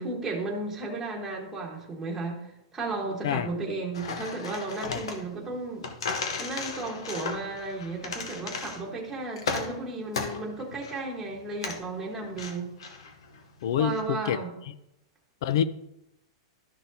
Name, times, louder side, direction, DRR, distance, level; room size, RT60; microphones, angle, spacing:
voice 1, 0.0-5.9 6.4-12.7 13.8-14.5, right 3 dB, 10° right, -2 dB, 1.3 m, -34 dB
sound 1, 3.9-14.0, left 4 dB, 90° left, 1.1 m, -36 dB
voice 2, 13.6-14.4 15.4-15.7, left 9 dB, 70° left, 15 dB, 0.5 m, -26 dB
12.0 x 6.2 x 2.8 m, 0.84 s
supercardioid pair, 150°, 3 cm